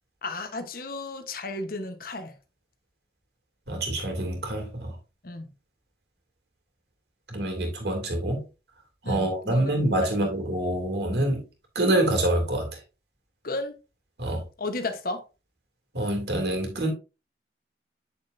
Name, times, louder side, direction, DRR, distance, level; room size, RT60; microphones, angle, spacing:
voice 1, 0.2-2.3 5.2-5.5 9.0-9.7 10.0-10.3 11.1-11.3 13.4-13.8 14.6-15.2, left 2 dB, 55° left, 1.1 m, -34 dB
voice 2, 3.7-5.0 7.3-8.4 9.1-11.4 11.7-12.7 14.2-14.4 15.9-16.9, right 1 dB, 65° right, 2.7 m, -26 dB
8.0 x 6.7 x 2.6 m
head